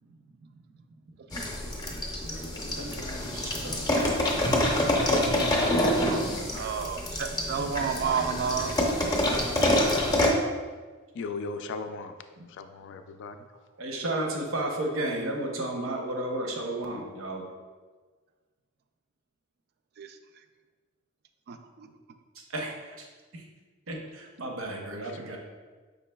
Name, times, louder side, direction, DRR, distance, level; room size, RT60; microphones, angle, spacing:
voice 1, 0.1-0.6 1.3-1.4 6.1-6.3 6.5-8.7 20.0-20.4 21.5-21.9, right 6 dB, 50° right, 7 dB, 0.3 m, -32 dB
sound 1, 1.3-10.3, left 1 dB, 20° left, 0.6 m, -26 dB
voice 2, 2.7-3.7 13.8-17.4 22.5-22.7 23.3-23.4 23.9-25.4, right 1 dB, 70° right, 1 dB, 0.7 m, -33 dB
voice 3, 11.1-12.1 12.5-13.4 25.0-25.2, left 4 dB, 60° left, 8 dB, 0.3 m, -37 dB
5.3 x 3.9 x 2.2 m, 1.4 s
head